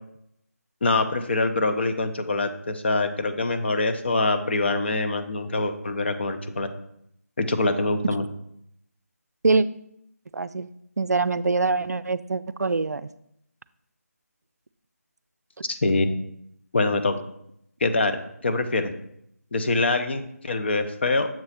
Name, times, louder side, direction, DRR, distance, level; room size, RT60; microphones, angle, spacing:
voice 1, 0.8-6.7 7.4-8.3 15.7-16.1 16.7-17.2 17.8-18.1 18.4-18.9 19.5-21.3, left 3 dB, 40° left, 8 dB, 0.7 m, -24 dB
voice 2, 10.3-10.7 11.0-13.1, right 3 dB, 80° right, 15 dB, 0.4 m, -24 dB
7.3 x 3.2 x 5.7 m, 0.75 s
figure-of-eight pair, 165°, 9 cm